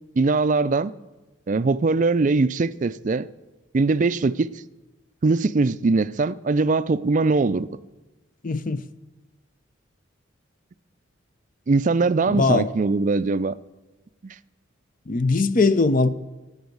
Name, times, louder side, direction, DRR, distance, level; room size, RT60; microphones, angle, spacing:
voice 1, 0.2-0.9 1.5-3.3 3.7-4.5 5.2-7.7 11.7-13.6 14.2-14.3, right 3 dB, 40° right, 0.4 m, -21 dB
voice 2, 8.4-8.8 12.3-12.7 15.1-16.1, left 3 dB, 40° left, 0.6 m, -20 dB
16.5 x 8.1 x 7.8 m
head